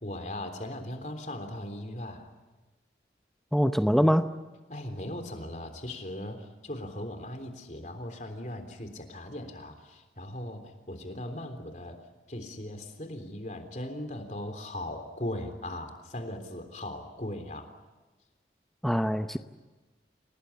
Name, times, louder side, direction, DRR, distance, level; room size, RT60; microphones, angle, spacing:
voice 1, 0.0-2.3 4.7-12.0 12.3-17.7, left 1 dB, 45° left, 7 dB, 3.5 m, -38 dB
voice 2, 3.5-4.3 18.8-19.4, equal, ahead, 8 dB, 0.8 m, -23 dB
28.5 x 19.0 x 8.8 m, 1.2 s
head